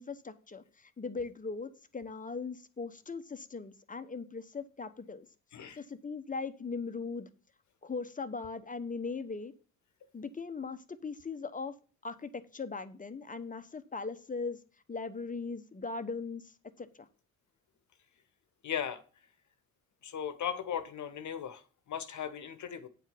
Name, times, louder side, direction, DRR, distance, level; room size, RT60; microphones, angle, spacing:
voice 1, 0.0-5.3 5.8-7.3 7.8-9.5 10.1-11.7 12.0-14.6 14.9-17.1, left 4 dB, 20° left, 1.0 m, -39 dB
voice 2, 18.6-19.0 20.0-22.9, left 8 dB, 45° left, 1.2 m, -37 dB
9.0 x 4.6 x 7.0 m
hypercardioid pair, 65°, 39 cm